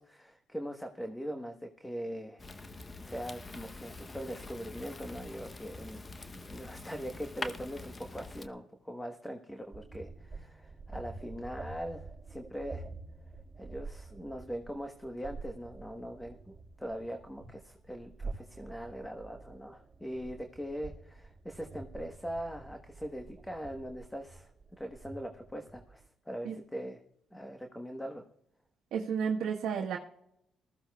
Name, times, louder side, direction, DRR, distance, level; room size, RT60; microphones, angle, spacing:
voice 1, 0.0-2.4 2.7-6.1 6.3-12.9 13.6-16.4 16.8-27.0 27.3-28.3, equal, 5° left, 4 dB, 1.1 m, -41 dB
Fire, 2.4-8.5, left 2 dB, 25° left, 0.8 m, -45 dB
sound 1, 9.7-26.1, right 3 dB, 20° right, 4.7 m, -48 dB
voice 2, 28.9-30.0, right 7 dB, 80° right, -1 dB, 1.2 m, -32 dB
19.5 x 14.5 x 2.3 m, 0.75 s
cardioid pair, 90°, 0 cm